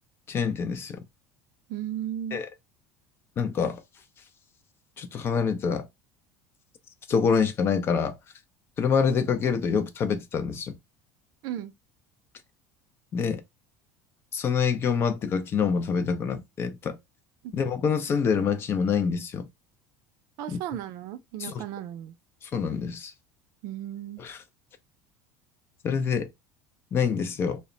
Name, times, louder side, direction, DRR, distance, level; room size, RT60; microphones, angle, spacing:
voice 1, 0.3-1.0 2.3-2.5 3.4-3.8 5.0-5.9 7.1-8.2 8.8-10.8 13.1-13.4 14.3-17.0 17.5-19.5 20.5-20.6 21.4-21.5 22.4-23.1 24.2-24.4 25.8-26.3 26.9-27.6, left 6 dB, 35° left, 0.4 m, -26 dB
voice 2, 1.7-2.4 11.4-11.7 17.4-17.5 20.4-22.2 23.6-24.2, right 11 dB, 65° right, 0.4 m, -35 dB
2.1 x 2.1 x 3.6 m
cardioid pair, 130°, 7 cm